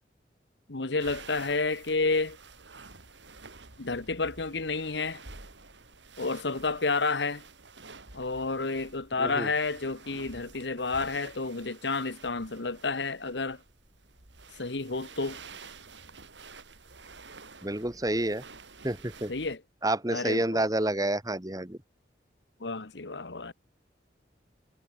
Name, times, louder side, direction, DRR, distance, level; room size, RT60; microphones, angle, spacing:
voice 1, 0.7-2.4 3.8-5.2 6.2-7.4 8.1-13.6 14.6-15.4 19.3-19.6 20.1-20.6 22.6-23.5, left 3 dB, 75° left, 1.4 m, -30 dB
sound 1, 1.0-19.6, right 4 dB, 85° right, 5.0 m, -50 dB
voice 2, 9.2-9.5 17.6-18.4 18.8-19.3 19.8-21.8, right 1 dB, 20° right, 2.1 m, -29 dB
head